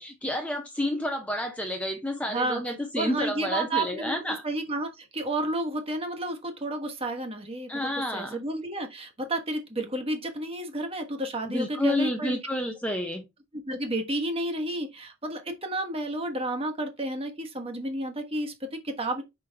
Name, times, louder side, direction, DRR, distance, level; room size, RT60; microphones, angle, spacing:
voice 1, 0.0-4.4 7.7-8.4 11.4-13.2, left 1 dB, 5° left, 0.7 m, -30 dB
voice 2, 2.3-12.4 13.5-19.2, right 1 dB, 25° right, 1.2 m, -31 dB
5.4 x 5.1 x 3.4 m
head